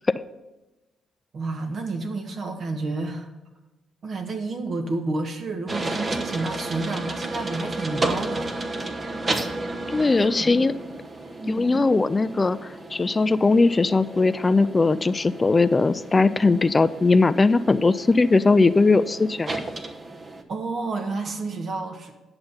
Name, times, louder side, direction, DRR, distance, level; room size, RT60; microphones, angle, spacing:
voice 1, 1.3-3.3 4.0-8.5 10.2-10.5 11.5-11.9 20.5-22.2, right 3 dB, 55° right, 6 dB, 1.4 m, -30 dB
sound 1, 5.7-20.4, right 2 dB, 40° right, 1.1 m, -33 dB
voice 2, 9.9-10.7 11.5-12.6 12.9-19.6, left 3 dB, 30° left, 15 dB, 0.4 m, -19 dB
10.5 x 6.8 x 5.7 m, 1.1 s
cardioid pair, 70°, 0 cm